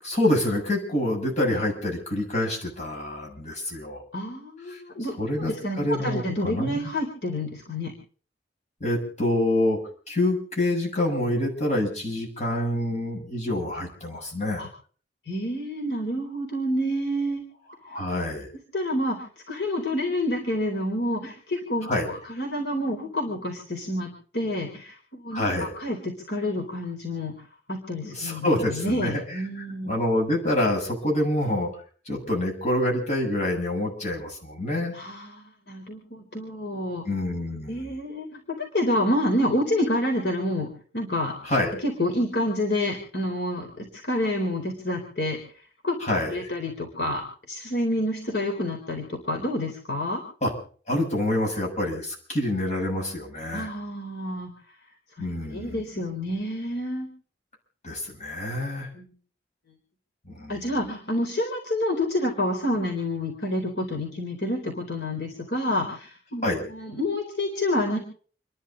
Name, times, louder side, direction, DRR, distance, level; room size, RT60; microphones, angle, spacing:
voice 1, 0.0-4.0 4.7-4.8 5.2-6.8 8.8-9.8 10.1-14.6 17.9-18.5 21.8-22.1 25.3-25.7 28.0-29.2 29.6-31.7 32.1-35.0 37.1-37.8 41.4-41.7 46.0-46.4 50.4-50.5 50.9-53.7 55.2-55.8 57.8-58.9 60.3-60.6 66.4-66.6, left 1 dB, 40° left, 0 dB, 7.1 m, -26 dB
voice 2, 4.1-5.2 5.5-7.9 14.6-14.7 15.3-17.4 18.7-19.2 19.5-27.3 27.7-29.9 34.9-37.0 37.7-41.3 41.8-45.4 45.8-45.9 46.3-47.2 47.5-50.2 53.5-54.5 55.5-57.1 58.9-59.1 60.5-68.0, left 1 dB, 70° left, 1 dB, 4.1 m, -28 dB
29.5 x 12.0 x 3.9 m, 0.43 s
head